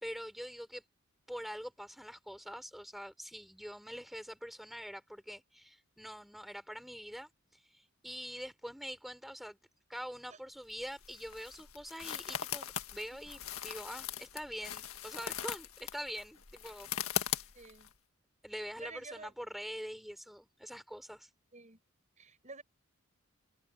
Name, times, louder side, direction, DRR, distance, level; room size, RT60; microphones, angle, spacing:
voice 1, 0.0-0.8 1.3-9.6 9.9-17.5 18.4-21.3, equal, ahead, 3.9 m, -45 dB
sound 1, 10.7-17.9, left 9 dB, 75° left, 1.7 m, -40 dB
voice 2, 17.5-17.9 18.8-19.3 21.5-21.8 22.2-22.6, right 4 dB, 35° right, 5.2 m, -49 dB
head